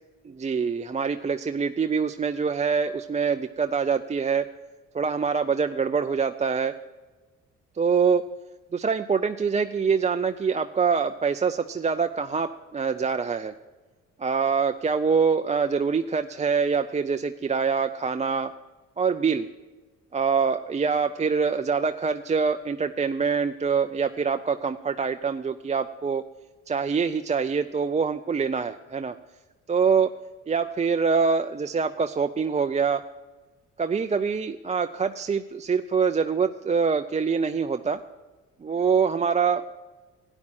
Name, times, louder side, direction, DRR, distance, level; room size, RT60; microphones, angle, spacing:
voice 1, 0.3-4.5 4.9-6.7 7.8-8.2 8.7-13.5 14.2-18.5 19.0-19.5 20.1-26.2 26.7-29.2 29.7-30.1 30.5-33.0 33.8-38.0 38.6-39.6, right 5 dB, 25° right, 7 dB, 0.5 m, -25 dB
13.0 x 9.9 x 4.3 m, 1.2 s
cardioid pair, 90°, 30 cm